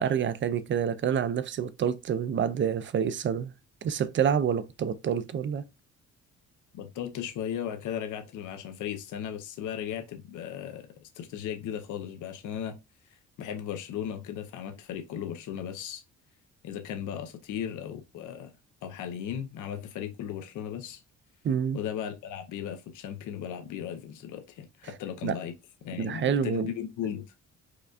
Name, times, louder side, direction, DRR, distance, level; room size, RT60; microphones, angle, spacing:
voice 1, 0.0-3.5 3.8-5.6 21.4-21.8 25.2-25.4 26.0-26.7, right 8 dB, 40° right, 0.4 m, -27 dB
voice 2, 6.7-10.9 11.1-12.8 13.4-16.0 16.6-18.5 18.8-21.0 21.7-25.5 25.8-27.2, left 9 dB, 80° left, 0.7 m, -36 dB
4.8 x 2.3 x 2.4 m
cardioid pair, 90°, 30 cm